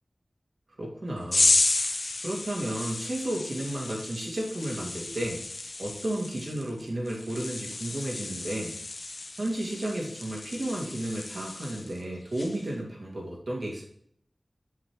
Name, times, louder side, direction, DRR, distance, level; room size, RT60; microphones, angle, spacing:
voice 1, 0.8-1.5 2.2-5.4 5.8-8.8 9.4-13.8, right 1 dB, 70° right, -2 dB, 2.3 m, -33 dB
sound 1, 1.3-12.0 12.3-12.7, left 2 dB, 70° left, 0.7 m, -32 dB
8.1 x 7.6 x 3.3 m, 0.64 s
wide cardioid pair, 60°, 0 cm